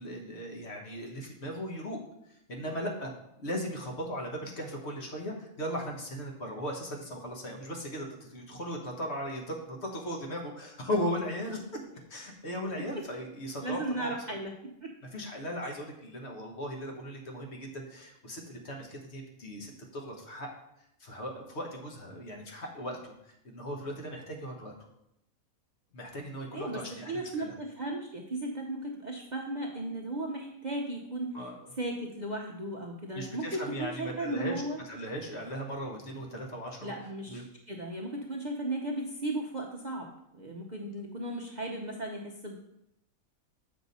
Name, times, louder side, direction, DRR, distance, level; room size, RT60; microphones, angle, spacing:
voice 1, 0.0-2.0 2.3-3.1 3.4-11.6 12.1-14.1 15.1-20.5 21.0-24.7 25.9-27.5 31.3-31.6 33.1-36.9 37.3-37.4, equal, 50° left, 0 dB, 1.5 m, -37 dB
voice 2, 13.6-14.5 14.8-14.9 26.5-31.5 31.8-34.8 36.8-40.1 40.3-42.6, right 1 dB, 40° right, -1 dB, 0.7 m, -36 dB
7.4 x 5.9 x 4.1 m, 0.82 s
omnidirectional pair, 1.5 m